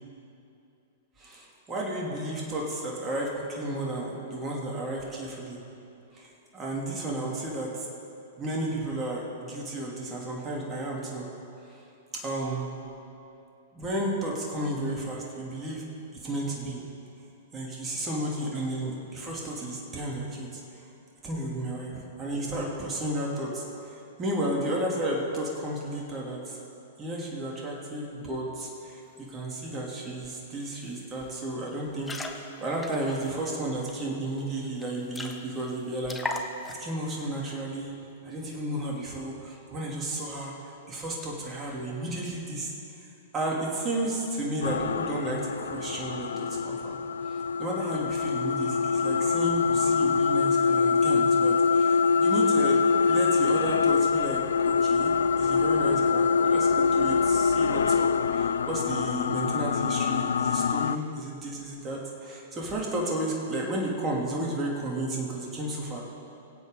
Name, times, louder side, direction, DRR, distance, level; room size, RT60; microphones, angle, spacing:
voice 1, 1.2-5.6 6.1-7.9 8.4-11.3 11.7-11.8 12.1-12.7 13.7-15.9 16.1-16.8 17.5-20.9 21.2-26.6 27.0-29.0 29.3-37.9 38.2-47.0 47.2-66.0, right 1 dB, 25° right, -3 dB, 2.9 m, -33 dB
sound 1, 30.2-30.3 30.6-30.9 31.2-31.4 31.9-33.9 34.4-34.5 34.8-34.9 35.1-35.7 36.0-36.9, left 2 dB, 10° left, 1.1 m, -37 dB
sound 2, 44.6-61.0, left 5 dB, 75° left, 0.4 m, -24 dB
23.5 x 8.2 x 4.0 m, 2.7 s
figure-of-eight pair, 105°, 0 cm